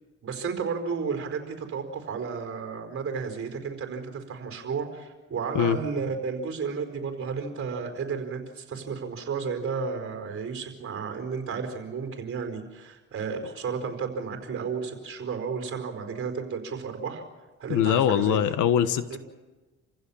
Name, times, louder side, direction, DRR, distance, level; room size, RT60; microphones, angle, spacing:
voice 1, 0.2-17.2 17.6-18.4 19.1-19.2, right 5 dB, 45° right, 5 dB, 4.7 m, -32 dB
voice 2, 17.7-19.2, left 9 dB, 85° left, 11 dB, 1.4 m, -22 dB
28.5 x 15.5 x 7.2 m, 1.2 s
cardioid pair, 90°, 30 cm